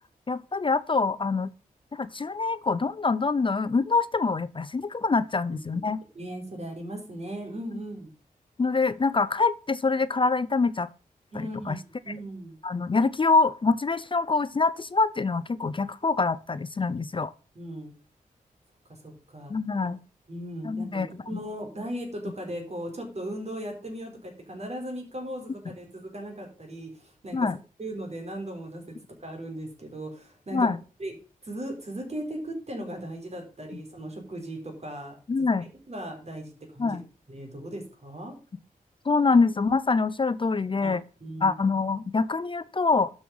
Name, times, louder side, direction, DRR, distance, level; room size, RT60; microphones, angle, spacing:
voice 1, 0.3-1.5 1.9-6.0 8.6-10.9 11.3-11.8 12.6-17.3 19.5-20.0 20.6-21.1 21.3-21.4 27.3-27.6 30.5-30.8 35.3-35.6 36.8-37.0 39.0-41.0 41.4-43.1, left 4 dB, 35° left, 16 dB, 0.6 m, -25 dB
voice 2, 6.1-8.1 11.3-11.8 12.0-12.5 17.5-17.9 19.0-19.5 20.3-27.5 27.8-28.8 29.2-30.7 31.0-31.1 31.4-35.5 35.9-37.0 37.3-38.3 40.8-40.9 41.2-41.5, right 1 dB, 50° right, 3 dB, 4.5 m, -37 dB
12.5 x 6.4 x 5.4 m, 0.36 s
wide cardioid pair, 95°, 15 cm